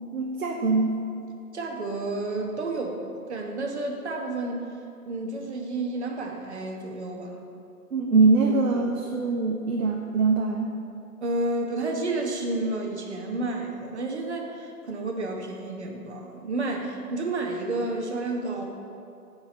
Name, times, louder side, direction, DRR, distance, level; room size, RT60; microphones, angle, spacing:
voice 1, 0.1-1.0 7.9-10.7, right 3 dB, 65° right, 1 dB, 0.8 m, -23 dB
voice 2, 1.5-4.7 5.0-7.4 8.7-8.8 11.2-18.6, right 2 dB, 45° right, 1 dB, 1.1 m, -31 dB
13.5 x 5.0 x 3.1 m, 2.6 s
figure-of-eight pair, 145°, 46 cm